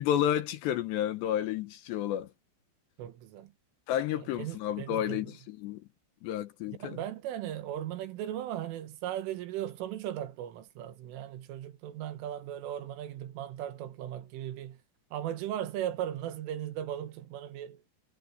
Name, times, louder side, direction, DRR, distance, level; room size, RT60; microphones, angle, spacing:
voice 1, 0.0-2.3 3.9-5.8 6.2-7.0, left 11 dB, 70° left, 3.1 m, -31 dB
voice 2, 3.0-3.5 4.2-5.4 6.7-14.8 15.1-17.8, right 11 dB, 90° right, 4.1 m, -37 dB
omnidirectional pair, 5.5 m